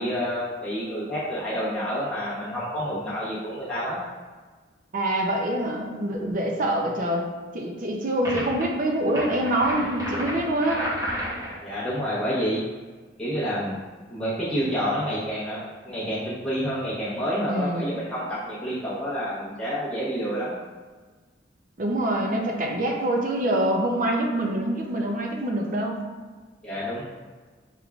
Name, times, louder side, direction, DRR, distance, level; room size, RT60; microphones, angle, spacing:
voice 1, 0.0-4.0 11.6-12.6 13.2-13.8 14.1-20.5 26.6-27.0, equal, 5° left, -11 dB, 1.0 m, -28 dB
voice 2, 4.9-7.3 7.5-10.8 17.5-17.9 21.8-26.0, right 1 dB, 45° right, 1 dB, 0.5 m, -25 dB
sound 1, 8.2-8.6 9.1-11.6, right 1 dB, 20° right, 0.8 m, -31 dB
4.7 x 3.6 x 2.4 m, 1.4 s
head